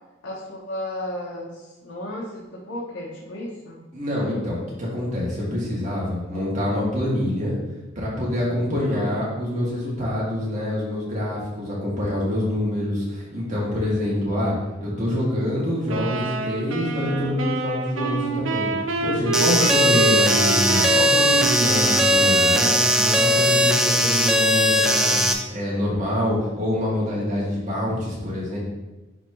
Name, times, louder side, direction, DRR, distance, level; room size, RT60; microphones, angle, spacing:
voice 1, 0.2-3.8, left 1 dB, 85° left, -6 dB, 1.3 m, -34 dB
voice 2, 3.9-7.5 8.0-14.5 14.8-18.7 19.0-22.7 23.0-25.2 25.5-28.6, left 1 dB, 35° right, -6 dB, 2.1 m, -26 dB
sound 1, 15.9-23.9, right 4 dB, 80° right, 0.7 m, -28 dB
sound 2, 19.3-25.3, equal, 5° right, 0.4 m, -19 dB
9.9 x 3.6 x 3.1 m, 1.1 s
head